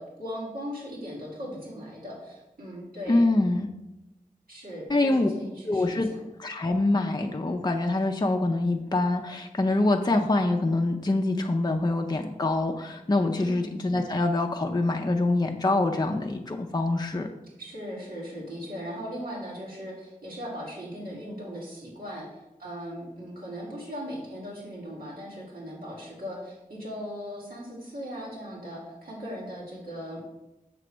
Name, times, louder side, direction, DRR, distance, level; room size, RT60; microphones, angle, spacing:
voice 1, 0.0-3.2 4.5-6.2 13.4-13.6 17.6-22.3 22.6-30.2, equal, 80° right, -5 dB, 2.2 m, -38 dB
voice 2, 3.1-3.7 4.9-5.3 5.6-6.1 6.4-17.3, left 2 dB, 30° left, 3 dB, 0.5 m, -25 dB
6.8 x 3.3 x 6.1 m, 0.95 s
wide cardioid pair, 70°, 15 cm